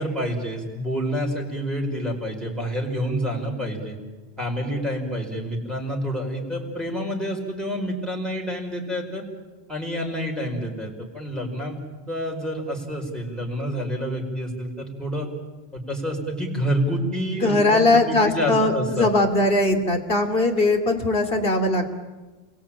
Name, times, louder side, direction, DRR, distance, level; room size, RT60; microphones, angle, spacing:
voice 1, 0.0-4.0 4.4-9.2 9.7-11.8 12.1-15.3 15.7-19.1, equal, ahead, -2 dB, 5.1 m, -28 dB
voice 2, 17.3-22.0, left 2 dB, 60° left, 5 dB, 2.9 m, -20 dB
29.5 x 22.5 x 8.9 m, 1.2 s
omnidirectional pair, 1.1 m